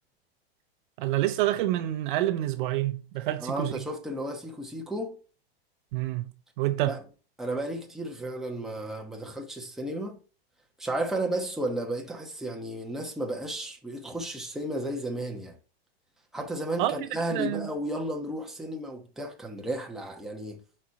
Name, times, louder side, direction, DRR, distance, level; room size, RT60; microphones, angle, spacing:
voice 1, 1.0-3.7 5.9-6.2 6.6-7.0 16.8-17.0 17.3-17.7, right 14 dB, 55° right, 0.7 m, -27 dB
voice 2, 3.4-5.2 6.9-7.0 7.4-10.2 10.8-15.6 16.3-20.6, right 1 dB, ahead, 1.0 m, -33 dB
6.0 x 4.4 x 4.6 m
supercardioid pair, 135°, 30 cm